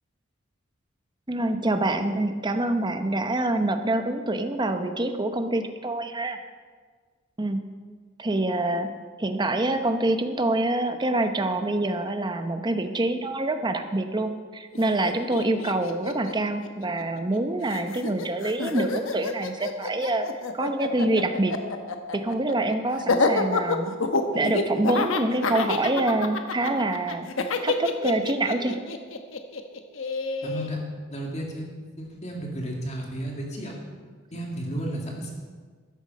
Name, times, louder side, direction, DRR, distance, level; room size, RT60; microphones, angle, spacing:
voice 1, 1.3-6.4 7.4-7.6 8.2-8.9 9.2-20.3 20.5-21.5 22.1-23.9 24.3-27.3 27.6-28.8, right 2 dB, 20° right, 7 dB, 0.9 m, -26 dB
Laughter, 14.7-14.8 15.0-17.4 17.7-30.7, left 3 dB, 75° left, 1.0 m, -28 dB
voice 2, 30.4-30.8 31.1-31.7 32.0-33.8 34.3-35.3, right 1 dB, 35° left, 0 dB, 2.1 m, -33 dB
13.0 x 10.5 x 5.3 m, 1.5 s
head